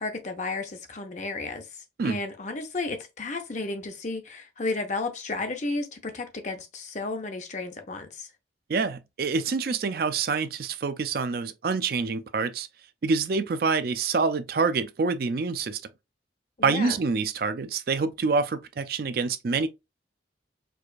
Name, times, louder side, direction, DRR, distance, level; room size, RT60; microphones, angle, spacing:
voice 1, 0.0-8.3 16.6-17.0, left 3 dB, 40° left, 0.7 m, -33 dB
voice 2, 8.7-12.7 13.0-15.8 16.6-19.7, right 4 dB, 50° right, 0.4 m, -26 dB
4.7 x 2.4 x 2.4 m
head